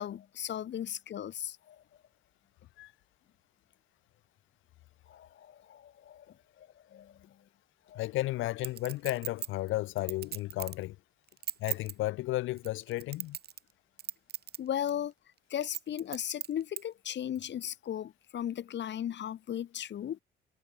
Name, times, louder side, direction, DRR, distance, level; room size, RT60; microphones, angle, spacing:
voice 1, 0.0-1.8 5.1-7.4 7.9-8.0 14.6-15.1 15.5-20.2, left 10 dB, 65° left, 2.3 m, -37 dB
voice 2, 7.9-11.0 11.6-13.4, left 17 dB, 90° left, 0.7 m, -33 dB
Chink clink, 8.6-10.8 11.3-11.9 12.6-13.7 14.0-14.6 14.9-15.0 15.6-16.8 17.4-17.5, right 10 dB, 55° right, 0.8 m, -38 dB
cardioid pair, 90°, 20 cm